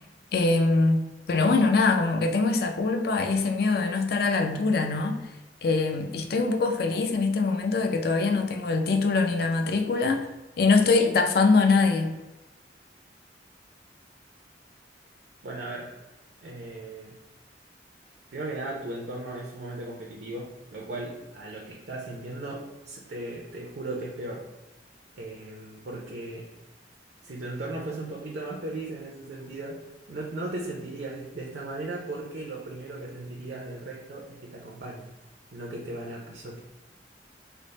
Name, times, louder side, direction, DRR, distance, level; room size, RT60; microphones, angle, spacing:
voice 1, 0.3-1.0 1.3-5.3 5.6-10.3 10.6-12.1, left 3 dB, 60° left, 5 dB, 0.4 m, -23 dB
voice 2, 15.4-16.0 16.4-17.2 18.3-24.4 25.2-26.5 27.2-29.8 30.1-35.1 35.5-36.6, right 2 dB, 65° right, -2 dB, 0.5 m, -37 dB
3.3 x 2.0 x 3.9 m, 1.1 s
head